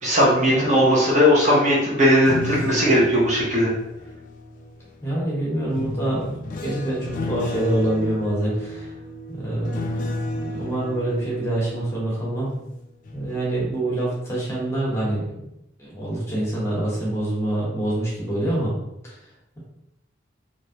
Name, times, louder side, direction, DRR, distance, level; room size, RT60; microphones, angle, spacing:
voice 1, 0.0-3.7, equal, 40° right, -5 dB, 0.9 m, -18 dB
sound 1, 2.1-5.0 5.7-12.7 13.0-13.4, left 1 dB, 45° left, 0.4 m, -32 dB
voice 2, 5.0-8.9 9.3-12.5 13.1-15.4 15.8-18.7 19.0-19.1, right 1 dB, 15° left, -6 dB, 1.1 m, -26 dB
3.3 x 2.5 x 2.8 m, 0.85 s
head